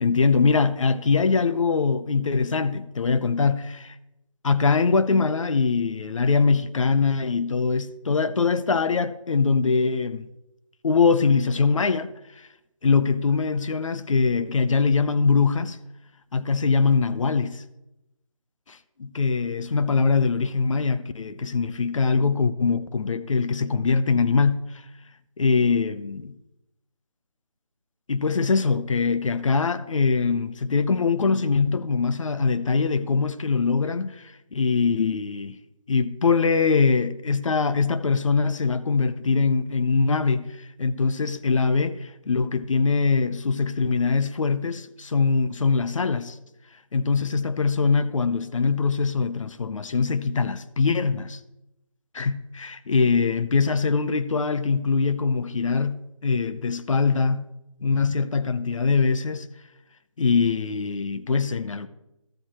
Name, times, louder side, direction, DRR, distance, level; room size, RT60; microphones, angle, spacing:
voice 1, 0.0-4.0 4.4-10.3 10.8-12.5 12.8-15.8 16.3-17.6 18.7-24.8 25.4-26.4 28.1-35.6 35.9-46.4 46.9-51.4 52.1-57.5 57.8-59.5 60.2-61.9, left 4 dB, 65° left, 0.6 m, -23 dB
13.0 x 4.6 x 4.3 m
figure-of-eight pair, 165°, 18 cm